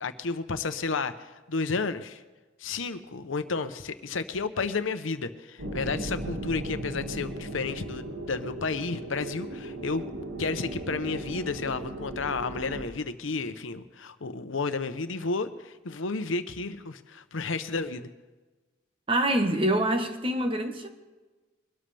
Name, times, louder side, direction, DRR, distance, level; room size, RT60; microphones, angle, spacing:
voice 1, 0.0-2.2 2.6-10.0 10.4-18.1, left 4 dB, 85° left, 10 dB, 0.9 m, -32 dB
sound 1, 5.6-12.9, right 1 dB, 80° right, 2.1 m, -37 dB
voice 2, 19.1-20.9, right 1 dB, 25° right, 6 dB, 1.2 m, -25 dB
23.0 x 13.0 x 3.4 m, 1.2 s
head